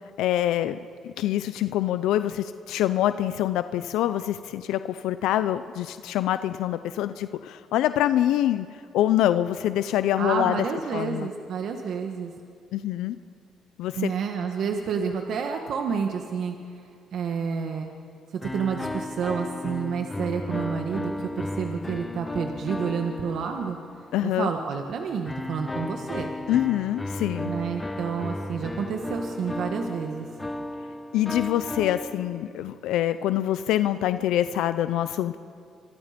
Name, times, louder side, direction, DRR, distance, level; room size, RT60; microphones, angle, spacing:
voice 1, 0.2-0.8 1.0-8.7 8.9-10.6 10.9-11.3 12.7-13.2 13.8-14.1 24.1-24.5 26.5-27.5 31.1-35.4, left 12 dB, 85° left, 12 dB, 0.6 m, -25 dB
voice 2, 10.2-12.3 13.9-16.5 17.1-17.9 18.3-23.8 24.2-26.3 27.4-30.3, right 6 dB, 65° right, 3 dB, 1.7 m, -29 dB
sound 1, 18.4-24.2 25.3-32.7, left 1 dB, 15° left, 1.1 m, -34 dB
27.0 x 24.5 x 5.2 m, 2.3 s
cardioid pair, 95°, 0 cm